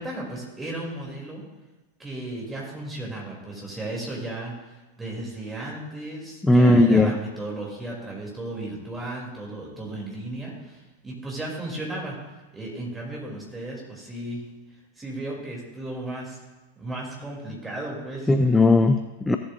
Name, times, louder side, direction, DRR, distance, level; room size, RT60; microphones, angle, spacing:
voice 1, 0.0-1.4 2.0-4.5 5.0-12.2 12.5-14.4 15.0-16.4 16.8-18.6, right 2 dB, 10° right, -3 dB, 3.0 m, -34 dB
voice 2, 6.4-7.1 18.3-19.4, left 2 dB, 10° left, 7 dB, 0.4 m, -17 dB
16.0 x 7.7 x 2.6 m, 1.2 s
figure-of-eight pair, 90°, 0 cm